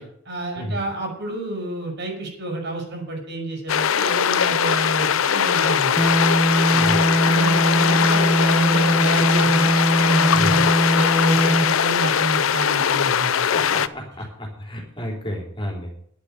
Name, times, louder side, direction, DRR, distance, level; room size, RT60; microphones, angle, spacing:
voice 1, 0.0-6.1 7.2-9.7 10.0-13.5, right 2 dB, 60° right, 1 dB, 6.8 m, -30 dB
sound 1, 3.7-13.9, left 8 dB, 75° left, 0.6 m, -20 dB
sound 2, 6.0-11.8, right 1 dB, 10° right, 0.9 m, -20 dB
voice 2, 6.5-7.1 10.3-10.6 13.4-16.0, equal, 25° left, 0 dB, 3.6 m, -31 dB
10.5 x 8.4 x 9.6 m, 0.65 s
head